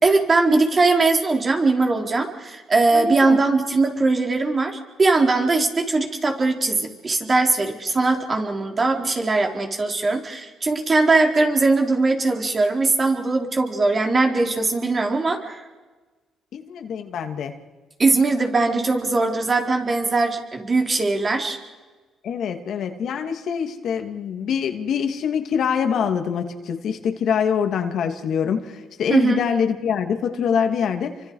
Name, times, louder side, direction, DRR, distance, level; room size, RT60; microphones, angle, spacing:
voice 1, 0.0-15.6 18.0-21.6 29.1-29.4, right 3 dB, 35° right, 3 dB, 4.0 m, -20 dB
voice 2, 2.9-3.4 16.5-17.5 22.2-31.1, left 7 dB, 70° left, 6 dB, 2.3 m, -24 dB
29.0 x 25.0 x 4.9 m, 1.3 s
cardioid pair, 90°, 0 cm